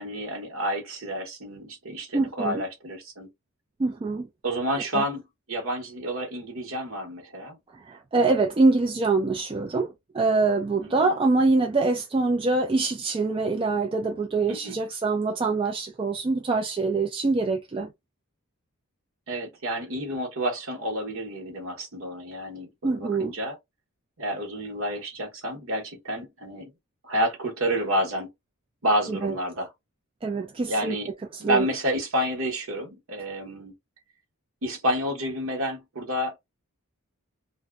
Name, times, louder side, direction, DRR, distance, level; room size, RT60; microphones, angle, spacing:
voice 1, 0.0-3.3 4.4-7.6 10.8-11.2 14.5-14.8 19.3-23.6 24.2-26.7 27.0-28.3 28.8-29.7 30.7-31.1 31.4-33.7 34.6-36.4, equal, 65° right, 0.9 m, -29 dB
voice 2, 2.1-2.6 3.8-4.3 4.9-5.0 7.9-17.9 22.8-23.3 29.1-29.4 30.2-31.0 31.4-31.7, right 3 dB, 25° right, 0.3 m, -24 dB
2.6 x 2.1 x 2.3 m
head